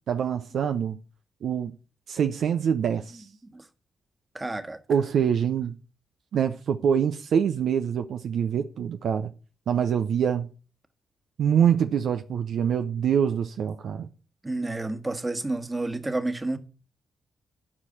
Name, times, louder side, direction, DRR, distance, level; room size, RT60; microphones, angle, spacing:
voice 1, 0.1-1.0 1.4-1.7 2.1-3.3 4.9-5.8 6.3-9.3 9.7-10.5 11.4-14.1, right 8 dB, 70° right, 0.6 m, -25 dB
voice 2, 4.3-4.8 14.4-16.6, right 2 dB, 25° right, 1.5 m, -30 dB
11.0 x 4.8 x 7.4 m
hypercardioid pair, 45°, 0 cm